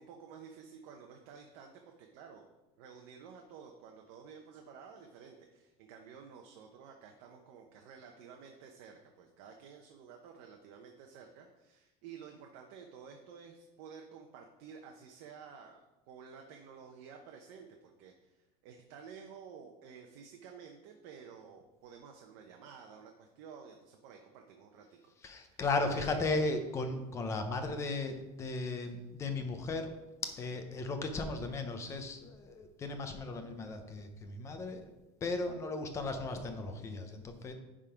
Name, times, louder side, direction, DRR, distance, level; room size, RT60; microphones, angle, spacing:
voice 1, 0.0-2.5 2.8-25.6 25.9-26.2 28.8-28.9, right 6 dB, 55° right, 3 dB, 0.8 m, -52 dB
voice 2, 25.2-29.9 30.2-34.8 35.2-37.5, left 3 dB, 20° left, 7 dB, 0.7 m, -36 dB
10.0 x 3.7 x 5.0 m, 1.0 s
cardioid pair, 175°, 15 cm